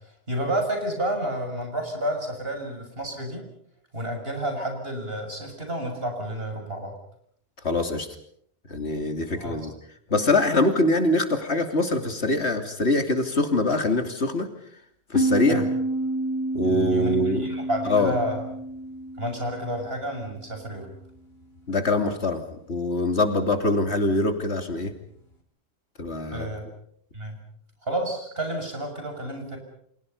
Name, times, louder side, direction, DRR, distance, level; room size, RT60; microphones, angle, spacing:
voice 1, 0.3-3.4 3.9-7.0 9.3-9.7 15.5-15.6 16.6-18.4 19.2-20.9 26.3-26.6 27.1-27.4 27.8-29.6, right 1 dB, 65° right, 3 dB, 6.9 m, -30 dB
voice 2, 7.6-8.1 8.7-9.7 10.1-14.5 15.1-15.6 16.5-17.5 17.9-18.2 21.7-24.9 26.0-26.5, left 2 dB, 90° left, 6 dB, 3.3 m, -24 dB
sound 1, 15.1-20.5, right 1 dB, 70° left, 4.5 m, -29 dB
30.0 x 27.0 x 5.6 m, 0.67 s
omnidirectional pair, 1.1 m